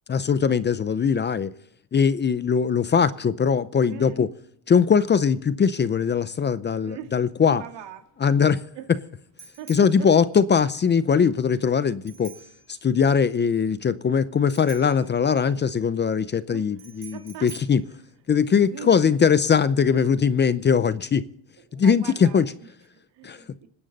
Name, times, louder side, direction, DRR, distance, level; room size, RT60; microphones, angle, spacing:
voice 1, 0.1-1.5 1.9-4.3 4.7-7.6 8.2-8.6 9.7-12.3 12.8-17.8 18.3-21.3 21.7-22.5 23.2-23.4, left 6 dB, 25° left, 0.5 m, -21 dB
voice 2, 3.9-4.2 6.8-7.2 7.5-8.1 8.7-8.9 9.6-10.1 16.5-17.5 17.9-18.0 18.7-19.2 21.6-23.7, right 10 dB, 80° right, 2.2 m, -41 dB
Bicycle bell, 7.7-18.9, right 5 dB, 40° right, 2.7 m, -50 dB
26.0 x 10.0 x 4.0 m
cardioid pair, 140°, 42 cm